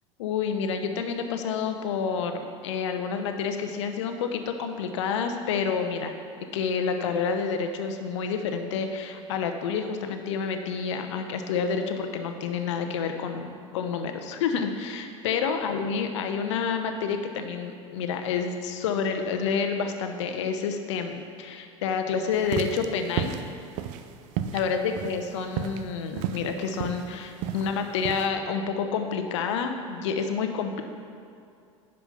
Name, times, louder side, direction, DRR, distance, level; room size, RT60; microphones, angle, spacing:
voice 1, 0.2-6.1 6.5-23.3 24.5-30.8, left 6 dB, 60° left, 6 dB, 0.8 m, -29 dB
sound 1, 22.4-28.3, right 9 dB, 45° right, 0.5 m, -33 dB
10.0 x 5.3 x 5.6 m, 2.4 s
figure-of-eight pair, 75°, 17 cm